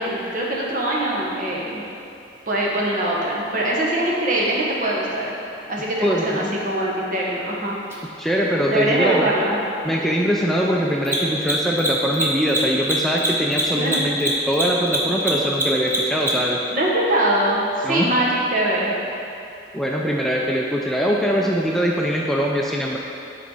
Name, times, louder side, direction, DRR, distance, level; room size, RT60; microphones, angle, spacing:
voice 1, 0.0-1.8 2.5-5.3 5.7-7.8 8.7-9.6 13.7-14.0 16.7-19.0, right 1 dB, 50° right, -4 dB, 1.4 m, -22 dB
voice 2, 6.0-6.6 8.2-9.4 9.8-16.6 17.8-18.1 19.7-23.0, equal, ahead, -2 dB, 0.4 m, -22 dB
Mechanisms, 7.9-8.0 11.0-16.6, right 1 dB, 15° right, 1.0 m, -23 dB
10.5 x 4.6 x 4.0 m, 2.7 s
head